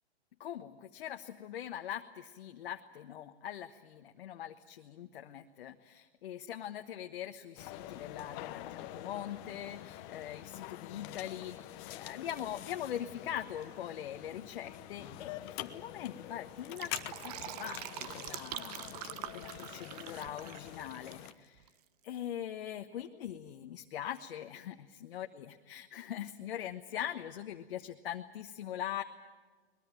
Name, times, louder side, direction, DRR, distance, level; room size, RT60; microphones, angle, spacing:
voice 1, 0.4-16.9 17.2-19.0 19.3-21.6 22.0-29.0, left 10 dB, 55° left, 5 dB, 1.3 m, -42 dB
sound 1, 7.6-21.3, left 13 dB, 30° left, 1.1 m, -46 dB
Fill (with liquid), 16.5-21.3 21.6-21.7, right 12 dB, 35° right, 0.9 m, -44 dB
22.5 x 21.0 x 9.0 m, 1.4 s
hypercardioid pair, 140°, 33 cm